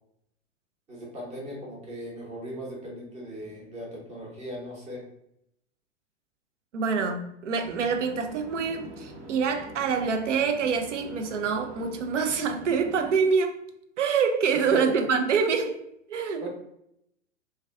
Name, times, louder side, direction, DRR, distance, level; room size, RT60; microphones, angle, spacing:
voice 1, 0.9-5.0 14.5-15.0 16.4-16.5, right 1 dB, 20° right, -3 dB, 0.8 m, -37 dB
voice 2, 6.7-13.5 14.0-15.8 16.1-16.5, right 5 dB, 75° right, 6 dB, 0.5 m, -26 dB
sound 1, 7.6-13.1, right 2 dB, 60° right, 0.9 m, -45 dB
2.3 x 2.2 x 2.3 m, 0.77 s
figure-of-eight pair, 100°, 36 cm